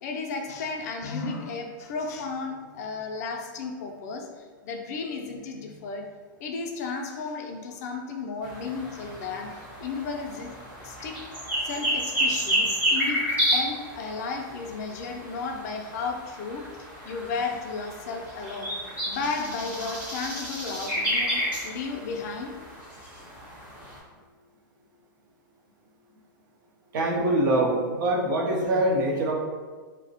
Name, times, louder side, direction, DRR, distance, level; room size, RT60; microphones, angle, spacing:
voice 1, 0.0-6.0 6.4-9.5 9.8-10.5 10.8-11.2 11.6-18.7 19.1-22.5, left 4 dB, 50° left, 2 dB, 0.4 m, -34 dB
sound 1, 8.4-24.0, equal, 10° right, 0.6 m, -31 dB
voice 2, 26.9-29.3, right 1 dB, 65° right, 0 dB, 0.6 m, -24 dB
2.7 x 2.0 x 2.7 m, 1.5 s
supercardioid pair, 160°, 11 cm